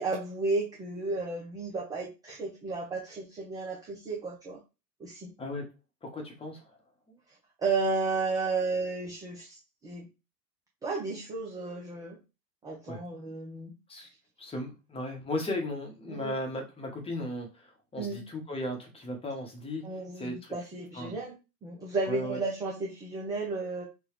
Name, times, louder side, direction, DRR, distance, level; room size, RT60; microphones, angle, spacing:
voice 1, 0.0-4.6 5.0-5.3 7.6-9.6 9.8-10.0 10.8-12.2 12.6-13.7 16.1-16.3 18.0-18.2 19.8-21.4 21.6-23.8, right 3 dB, 10° right, -2 dB, 0.3 m, -33 dB
voice 2, 6.0-6.8 12.9-13.0 13.9-14.1 14.4-20.5 20.9-21.2 22.1-22.4, left 1 dB, 10° left, 2 dB, 0.9 m, -36 dB
3.9 x 2.2 x 3.1 m, 0.28 s
hypercardioid pair, 100°, 50 cm